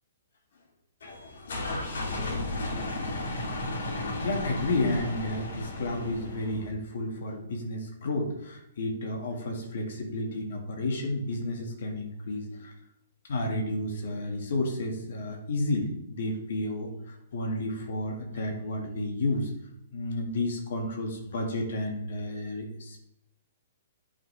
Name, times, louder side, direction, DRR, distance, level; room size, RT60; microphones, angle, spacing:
sound 1, 1.0-6.6, left 2 dB, 75° left, 2.3 m, -34 dB
voice 1, 1.5-2.6 4.2-12.7 13.3-19.5 19.9-23.0, left 1 dB, 55° left, 1 dB, 2.1 m, -32 dB
sound 2, 1.6-6.7, left 1 dB, 10° left, 1.1 m, -44 dB
10.5 x 6.1 x 3.5 m, 0.81 s
hypercardioid pair, 175°, 0 cm